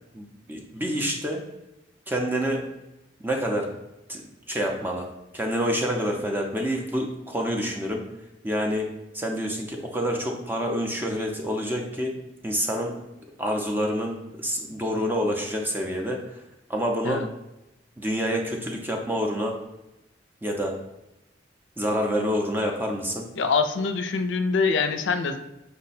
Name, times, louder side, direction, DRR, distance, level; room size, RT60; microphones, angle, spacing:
voice 1, 0.1-1.4 2.1-2.6 3.2-3.7 4.1-4.2 4.5-5.1 5.3-8.0 8.4-8.9 9.1-12.2 12.4-13.0 13.4-16.4 16.7-17.2 18.0-19.6 20.4-20.8 21.8-23.3, equal, 10° right, 1 dB, 0.5 m, -27 dB
voice 2, 23.4-25.4, left 4 dB, 80° left, 7 dB, 0.4 m, -24 dB
5.5 x 2.1 x 4.1 m, 0.94 s
head